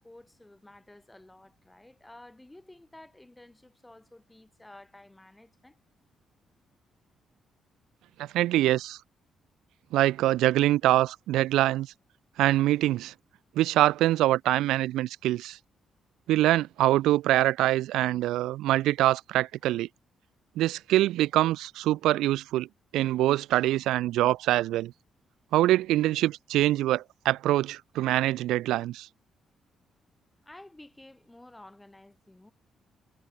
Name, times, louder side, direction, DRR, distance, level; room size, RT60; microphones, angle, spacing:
voice 1, 0.0-5.8 30.4-32.5, left 1 dB, 10° left, 4.5 m, -52 dB
voice 2, 8.2-9.0 9.9-11.9 12.4-13.1 13.6-15.6 16.3-19.9 20.6-22.7 22.9-24.9 25.5-29.1, right 15 dB, 90° right, 0.3 m, -24 dB
cardioid pair, 90°, 0 cm